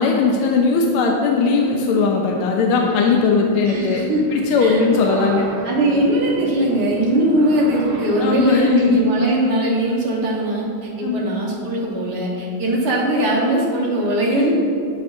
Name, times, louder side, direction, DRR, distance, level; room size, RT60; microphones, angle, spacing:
voice 1, 0.0-4.0 4.3-5.5 8.2-9.0 11.0-11.2 14.3-14.5, left 4 dB, 90° left, 1 dB, 1.5 m, -18 dB
sound 1, 2.8-8.6, right 2 dB, 70° right, 0.7 m, -34 dB
voice 2, 3.7-4.2 4.6-4.8 5.6-14.5, right 1 dB, 55° right, -3 dB, 1.7 m, -20 dB
9.5 x 6.5 x 2.6 m, 2.5 s
omnidirectional pair, 2.3 m